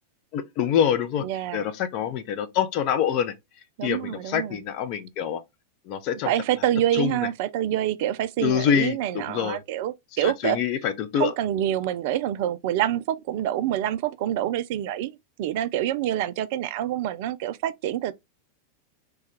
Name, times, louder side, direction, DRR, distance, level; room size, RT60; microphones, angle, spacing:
voice 1, 0.3-1.2 1.5-3.3 3.8-5.4 5.9-6.3 6.9-7.2 8.4-9.6 10.2-11.3, left 9 dB, 40° left, 0.6 m, -25 dB
voice 2, 1.2-1.7 3.8-4.6 6.3-10.6 11.1-18.1, right 12 dB, 50° right, 0.3 m, -26 dB
3.4 x 2.3 x 4.3 m
figure-of-eight pair, 90°, 0 cm